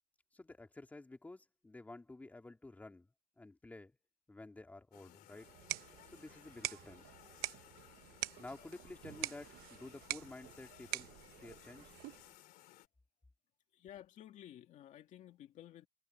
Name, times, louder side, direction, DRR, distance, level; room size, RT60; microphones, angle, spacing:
voice 1, 0.3-3.1 3.4-4.0 4.3-5.5 6.1-7.0 8.4-11.9, left 2 dB, 10° left, 2.7 m, -52 dB
sound 1, 4.9-12.9, left 16 dB, 65° left, 3.1 m, -60 dB
sound 2, 5.4-12.4, right 17 dB, 70° right, 1.0 m, -45 dB
voice 2, 13.7-15.9, left 11 dB, 50° left, 2.3 m, -54 dB
cardioid pair, 150°, 16 cm